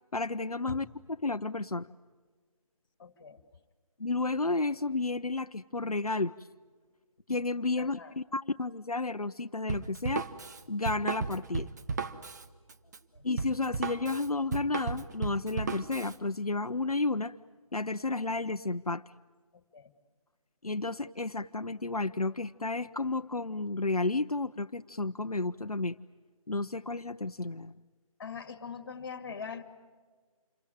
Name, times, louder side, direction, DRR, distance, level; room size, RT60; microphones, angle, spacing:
voice 1, 0.1-0.9 1.2-1.9 4.0-6.3 7.3-10.3 10.7-11.7 13.2-17.3 17.7-19.0 20.6-26.0 26.5-27.7, left 3 dB, 90° left, 9 dB, 0.7 m, -32 dB
voice 2, 3.0-3.4 7.8-8.2 12.8-13.3 19.5-19.9 28.2-29.6, left 6 dB, 35° left, 11 dB, 2.3 m, -43 dB
Drum kit, 9.7-16.2, right 5 dB, 30° right, 0.9 m, -35 dB
28.0 x 23.0 x 9.1 m, 1.5 s
figure-of-eight pair, 155°, 19 cm